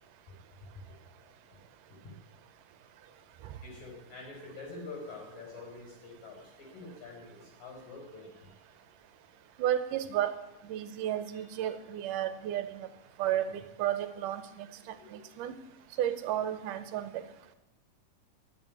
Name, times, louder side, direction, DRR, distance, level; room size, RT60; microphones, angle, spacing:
voice 1, 3.6-8.6 15.0-15.3, left 3 dB, 75° left, 0 dB, 6.3 m, -46 dB
voice 2, 9.6-10.4 10.7-12.8 13.2-14.7 15.1-15.5 16.0-17.1, right 11 dB, 80° right, 11 dB, 2.3 m, -32 dB
12.5 x 8.3 x 9.5 m, 0.91 s
omnidirectional pair, 3.9 m